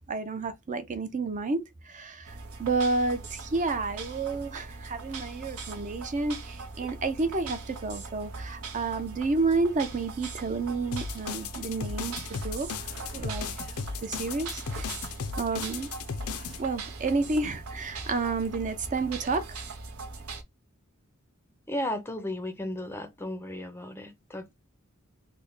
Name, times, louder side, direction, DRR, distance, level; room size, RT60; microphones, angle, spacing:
voice 1, 0.0-12.7 13.1-13.5 14.0-14.9 15.4-15.9 16.6-19.6, right 3 dB, 35° right, 0.5 m, -30 dB
sound 1, 2.2-20.4, right 3 dB, 85° right, 0.7 m, -41 dB
sound 2, 10.9-16.6, left 5 dB, 90° left, 0.5 m, -36 dB
voice 2, 21.7-24.5, left 1 dB, 10° left, 0.5 m, -34 dB
3.2 x 2.1 x 3.8 m
head